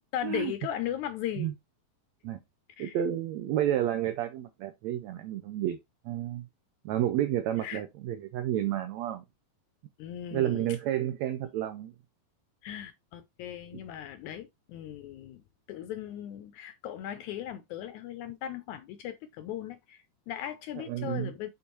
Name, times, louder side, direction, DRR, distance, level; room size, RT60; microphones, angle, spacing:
voice 1, 0.1-1.5 2.8-3.0 7.6-7.8 10.0-10.8 12.6-15.4 15.7-21.5, left 11 dB, 80° left, 1.7 m, -38 dB
voice 2, 2.8-5.8 6.0-6.5 6.8-9.2 10.3-11.9 20.9-21.3, right 12 dB, 90° right, 1.5 m, -30 dB
7.0 x 4.5 x 3.0 m
omnidirectional pair, 3.9 m